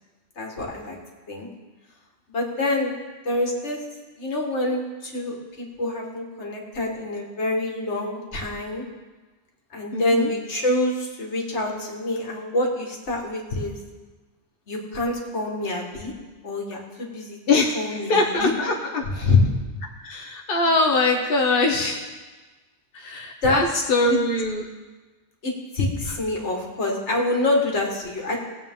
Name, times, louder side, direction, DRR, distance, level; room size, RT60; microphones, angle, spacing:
voice 1, 0.4-1.0 1.3-1.5 2.3-2.9 3.2-3.8 4.2-8.8 9.7-13.8 14.7-16.1 16.4-17.4 17.7-18.5 19.1-19.5 23.4-23.8 24.1-24.2 25.4-28.4, left 2 dB, 85° left, 0 dB, 2.0 m, -26 dB
voice 2, 9.9-10.3 17.5-19.0 20.0-22.1 22.9-24.6, left 2 dB, 55° left, 1 dB, 1.1 m, -22 dB
18.5 x 7.9 x 3.7 m, 1.3 s
omnidirectional pair, 1.1 m